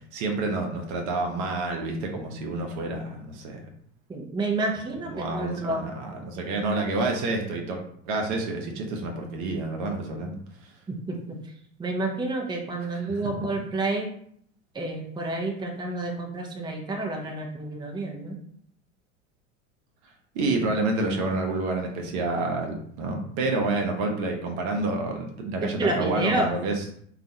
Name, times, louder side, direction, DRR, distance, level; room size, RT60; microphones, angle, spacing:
voice 1, 0.1-3.6 5.1-10.4 12.9-13.2 20.3-26.8, right 2 dB, 60° right, 2 dB, 0.8 m, -28 dB
voice 2, 4.1-5.8 10.9-11.4 11.8-14.1 14.7-18.4 25.6-26.5, right 2 dB, 10° right, 1 dB, 0.6 m, -29 dB
2.5 x 2.4 x 4.1 m, 0.65 s
hypercardioid pair, 80°, 38 cm